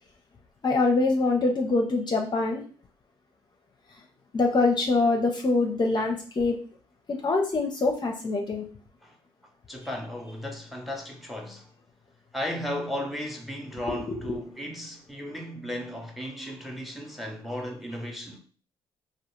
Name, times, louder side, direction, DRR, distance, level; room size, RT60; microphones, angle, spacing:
voice 1, 0.6-2.6 4.3-6.6 7.1-8.7 13.9-14.4, left 3 dB, 35° left, 0.6 m, -24 dB
voice 2, 9.7-11.7 12.3-18.4, left 1 dB, ahead, 0.8 m, -35 dB
2.3 x 2.3 x 3.0 m
hypercardioid pair, 55°, 13 cm